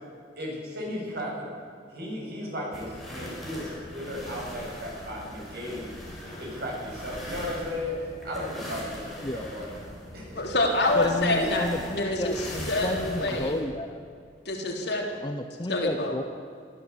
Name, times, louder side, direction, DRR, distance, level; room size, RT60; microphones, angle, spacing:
voice 1, 0.4-1.5 1.9-5.9 6.2-9.8 10.1-10.4 11.4-11.5, left 1 dB, 55° right, -2 dB, 7.5 m, -35 dB
sound 1, 2.7-13.6, equal, ahead, 5.7 m, -40 dB
voice 2, 10.4-11.7 12.0-13.6 14.5-15.2 15.7-16.1, left 2 dB, 60° left, 0 dB, 3.9 m, -26 dB
voice 3, 10.9-14.0 15.2-16.2, left 1 dB, 25° left, 7 dB, 0.8 m, -32 dB
23.5 x 14.0 x 8.5 m, 2.3 s
head